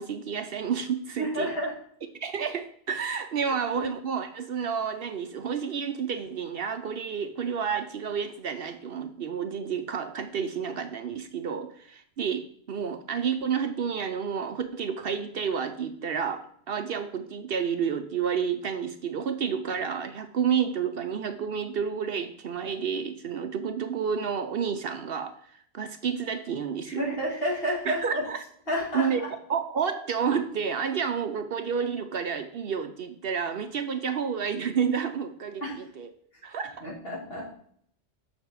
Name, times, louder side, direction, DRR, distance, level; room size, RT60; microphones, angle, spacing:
voice 1, 0.0-1.5 2.2-27.0 27.9-28.4 28.9-29.2 29.5-36.1 36.4-36.8, right 7 dB, 60° right, 9 dB, 0.8 m, -30 dB
voice 2, 1.2-1.7 3.8-3.9 26.8-28.2 28.7-29.3 35.6-35.8 36.8-37.5, equal, 55° left, -3 dB, 2.7 m, -30 dB
6.7 x 6.5 x 4.6 m, 0.63 s
omnidirectional pair, 1.2 m